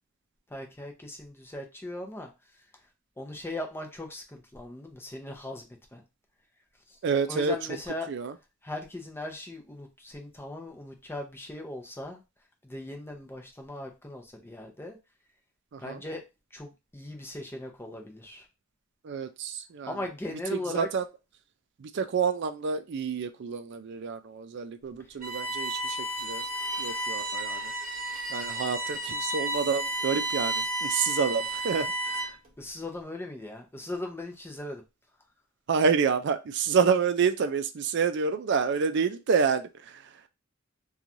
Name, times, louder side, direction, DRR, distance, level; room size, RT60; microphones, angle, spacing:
voice 1, 0.5-2.3 3.2-6.0 7.3-8.1 8.6-12.2 12.6-15.0 15.8-16.2 16.5-18.4 19.9-20.9 32.6-34.8, left 1 dB, 10° left, 2 dB, 0.6 m, -38 dB
voice 2, 7.0-7.6 8.1-8.3 15.7-16.0 19.0-21.0 21.8-26.4 26.8-27.7 28.3-32.3 35.7-40.0, right 5 dB, 60° right, 10 dB, 0.4 m, -28 dB
Bowed string instrument, 25.2-32.5, right 1 dB, 45° right, 0.9 m, -32 dB
3.1 x 2.3 x 2.6 m, 0.26 s
head